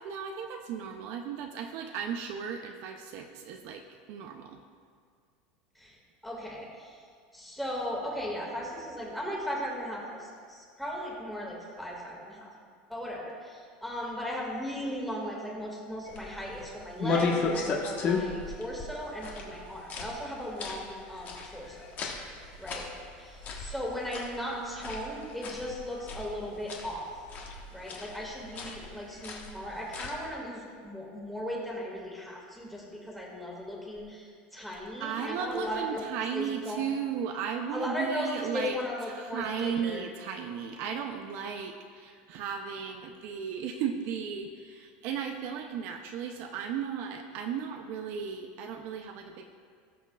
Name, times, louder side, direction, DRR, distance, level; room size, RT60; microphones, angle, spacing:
voice 1, 0.0-3.8 4.1-4.6 35.0-38.8 39.1-49.6, right 7 dB, 55° right, 4 dB, 0.6 m, -35 dB
voice 2, 6.2-7.0 7.3-12.5 12.9-21.9 22.6-27.1 27.7-36.0 36.3-36.8 37.7-40.0, equal, ahead, -4 dB, 2.0 m, -37 dB
sound 1, 16.0-30.3, left 4 dB, 40° left, 1.3 m, -36 dB
18.5 x 6.3 x 2.4 m, 2.1 s
supercardioid pair, 140°, 5 cm